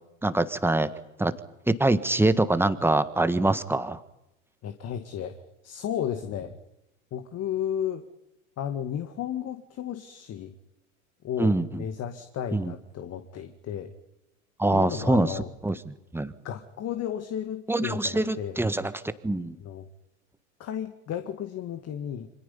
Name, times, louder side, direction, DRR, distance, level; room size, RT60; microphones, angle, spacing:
voice 1, 0.2-0.9 1.2-1.3 1.7-4.0 11.4-11.8 12.5-12.7 14.6-15.3 15.6-15.7 16.1-16.3 17.7-18.9 19.2-19.5, right 2 dB, 5° right, 12 dB, 1.5 m, -24 dB
voice 2, 4.6-5.4 5.6-6.5 7.1-8.0 8.6-10.5 11.2-13.9 14.7-15.5 16.4-18.6 19.6-19.9 20.6-22.3, left 9 dB, 35° left, 8 dB, 2.0 m, -33 dB
28.5 x 26.0 x 5.5 m, 0.89 s
hypercardioid pair, 95°, 41 cm